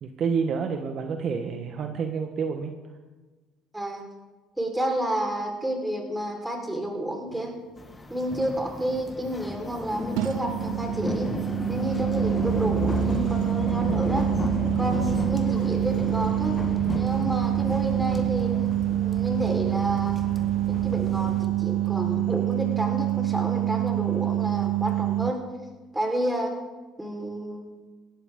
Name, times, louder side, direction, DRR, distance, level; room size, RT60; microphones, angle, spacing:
voice 1, 0.0-2.7, right 6 dB, 55° right, 5 dB, 1.2 m, -28 dB
voice 2, 4.6-7.5 8.1-11.3 11.7-14.3 14.8-16.6 16.9-18.5 18.9-20.2 20.7-25.4 25.9-26.6 27.0-27.8, right 1 dB, 10° right, 1 dB, 4.3 m, -30 dB
sound 1, 7.3-7.5 10.2-25.3, right 14 dB, 80° right, 0.5 m, -26 dB
sound 2, 7.8-21.5, left 2 dB, 25° left, 1.4 m, -33 dB
18.0 x 13.0 x 3.8 m, 1.3 s
supercardioid pair, 70°, 0 cm